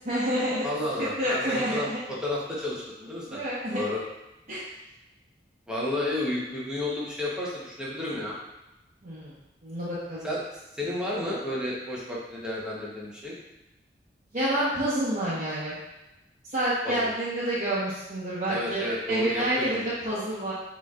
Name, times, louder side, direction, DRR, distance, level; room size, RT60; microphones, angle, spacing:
voice 1, 0.0-0.7 1.2-2.0 3.3-3.8 4.5-4.6 9.0-9.3 9.6-10.3 14.3-15.7 16.5-20.5, right 1 dB, 45° right, -10 dB, 1.1 m, -28 dB
voice 2, 0.6-3.4 3.7-4.0 5.7-8.3 10.2-10.4 10.7-13.3 16.8-17.1 18.5-19.9, left 1 dB, 5° right, -6 dB, 1.0 m, -31 dB
6.8 x 3.1 x 2.4 m, 0.98 s
head